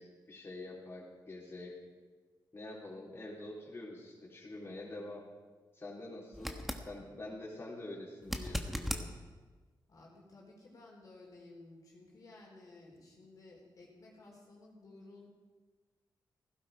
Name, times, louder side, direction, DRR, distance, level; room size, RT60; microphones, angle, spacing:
voice 1, 0.0-1.7 2.5-5.2 5.7-6.6 6.9-9.1, left 2 dB, 30° left, -5 dB, 3.8 m, -46 dB
sound 1, 6.3-6.9 8.2-9.1 12.1-12.2, equal, ahead, 1.2 m, -37 dB
voice 2, 9.9-15.3, left 2 dB, 45° left, -2 dB, 3.6 m, -55 dB
17.0 x 16.0 x 5.0 m, 1.4 s
wide cardioid pair, 155°, 8 cm